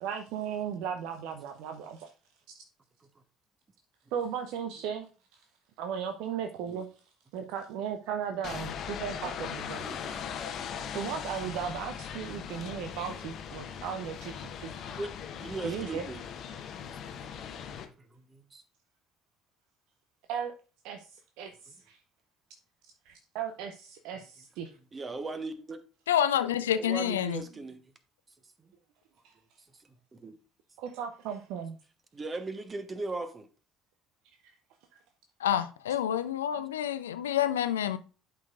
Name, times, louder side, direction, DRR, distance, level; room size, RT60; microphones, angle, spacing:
voice 1, 0.0-2.1 4.1-5.1 5.3-5.4 5.8-6.9 7.3-9.9 10.9-14.3 14.6-14.7 15.6-16.0 20.3-20.5 20.8-22.0 23.1-24.7 29.2-29.3 30.8-31.8 34.4-34.5, right 8 dB, 60° right, 0.5 m, -36 dB
sound 1, 8.4-17.8, left 7 dB, 50° left, 0.8 m, -39 dB
voice 2, 9.8-10.2 15.0-15.1 15.4-16.2 17.1-17.3 18.0-18.6 24.9-25.8 26.8-27.8 28.6-28.7 29.8-30.4 32.1-33.5, right 2 dB, 30° right, 1.1 m, -38 dB
voice 3, 26.1-27.4 35.4-38.0, left 10 dB, 75° left, 0.4 m, -28 dB
11.0 x 4.5 x 2.5 m
figure-of-eight pair, 55°, 0 cm